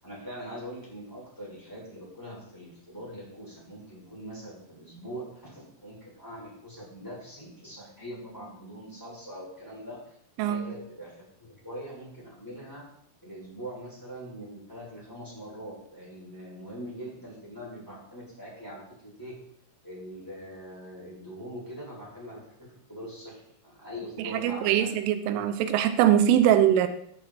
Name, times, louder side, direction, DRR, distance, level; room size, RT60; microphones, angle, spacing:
voice 1, 0.0-10.2 10.5-12.9 13.2-19.3 19.8-25.5, equal, 5° left, 7.1 m, -42 dB
voice 2, 10.4-10.7 24.2-26.9, right 10 dB, 90° right, 3.5 m, -22 dB
17.5 x 11.0 x 4.4 m
omnidirectional pair, 5.5 m